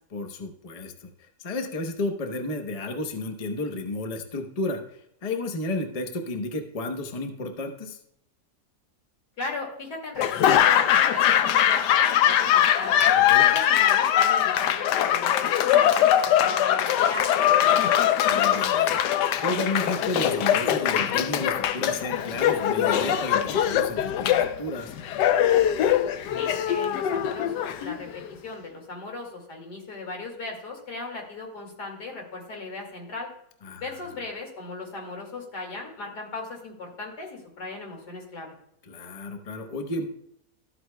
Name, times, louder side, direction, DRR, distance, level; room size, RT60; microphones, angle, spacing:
voice 1, 0.1-8.0 13.1-13.5 18.2-19.0 19.4-24.9 33.6-34.0 38.8-40.1, left 2 dB, 35° left, 5 dB, 0.7 m, -32 dB
voice 2, 9.4-13.0 13.5-17.9 26.4-33.3 33.8-38.5, left 3 dB, 75° left, 0 dB, 2.7 m, -37 dB
Laughter / Applause, 10.2-28.3, left 10 dB, 90° left, 1.2 m, -22 dB
13.5 x 8.0 x 2.2 m, 0.72 s
omnidirectional pair, 1.8 m